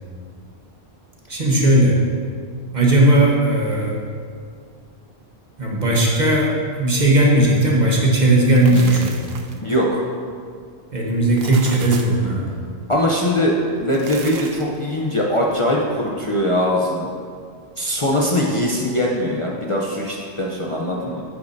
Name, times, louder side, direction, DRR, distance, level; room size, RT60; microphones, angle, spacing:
voice 1, 1.3-2.0 2.7-3.9 5.6-9.2 10.9-12.5, right 1 dB, 45° right, -3 dB, 1.3 m, -17 dB
sound 1, 8.4-9.7 11.2-12.3 13.8-14.8, right 6 dB, 70° right, 0.8 m, -36 dB
voice 2, 9.6-10.0 12.9-17.1 17.8-21.2, equal, 35° left, -3 dB, 0.7 m, -21 dB
9.8 x 8.4 x 2.7 m, 2.2 s
omnidirectional pair, 1.1 m